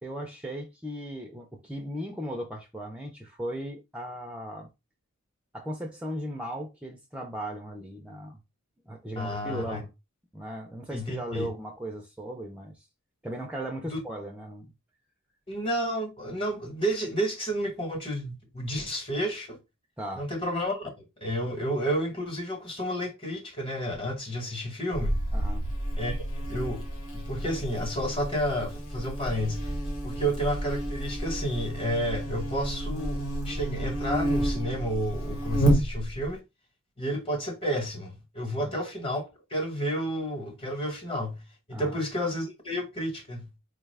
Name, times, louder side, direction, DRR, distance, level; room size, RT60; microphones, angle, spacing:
voice 1, 0.0-4.7 5.5-8.4 8.9-9.9 10.3-12.8 13.2-14.7 20.0-20.3 25.3-25.7 38.6-38.7 41.7-42.0, equal, 5° right, 0.5 m, -37 dB
voice 2, 9.1-9.8 10.9-11.5 13.9-14.0 15.5-19.6 20.2-20.9 21.2-25.2 26.0-26.9 27.1-29.7 30.0-36.4 37.0-41.4 41.7-43.5, equal, 25° left, 1.2 m, -31 dB
Buzz, 24.9-36.3, right 1 dB, 80° left, 1.3 m, -30 dB
4.7 x 2.3 x 3.3 m
head